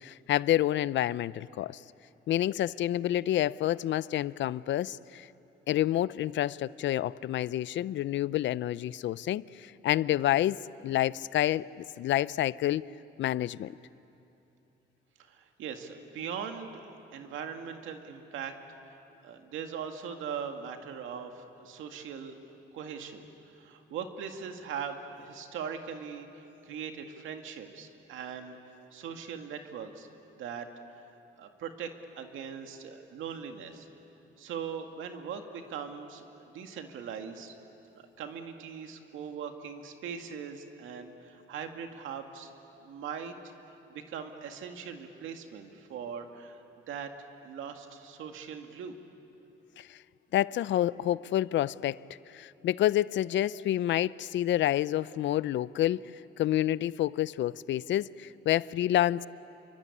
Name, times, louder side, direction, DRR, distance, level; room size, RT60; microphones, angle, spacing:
voice 1, 0.0-1.8 2.3-5.3 5.7-11.7 12.0-12.9 13.2-13.7 49.8-50.0 50.3-52.0 52.3-56.0 56.4-59.3, left 13 dB, 70° left, 19 dB, 0.5 m, -28 dB
voice 2, 15.2-16.8 17.1-18.5 19.2-22.4 22.7-23.2 23.5-28.6 28.9-30.1 30.4-30.7 31.4-31.9 32.2-33.9 34.4-37.5 38.2-42.5 42.8-43.4 43.9-47.1 47.4-48.9, right 7 dB, 85° right, 5 dB, 2.1 m, -40 dB
28.0 x 24.0 x 8.5 m, 2.9 s
cardioid pair, 90°, 20 cm